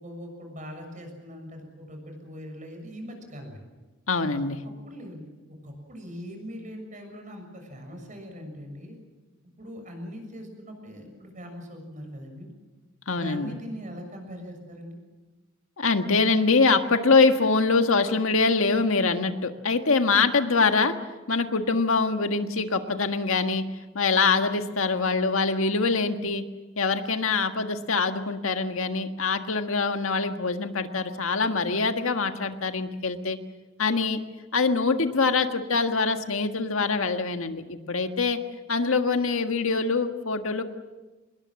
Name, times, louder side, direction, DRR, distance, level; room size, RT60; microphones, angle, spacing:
voice 1, 0.0-3.6 4.8-5.2 5.6-9.0 9.6-12.5 13.2-15.0, equal, 40° right, 4 dB, 6.6 m, -41 dB
voice 2, 4.1-4.6 13.1-13.5 15.8-20.9 21.3-23.6 23.9-26.4 26.8-33.4 33.8-34.2 34.5-38.4 38.7-40.6, left 4 dB, 85° left, 7 dB, 1.6 m, -24 dB
25.5 x 21.5 x 7.6 m, 1.2 s
head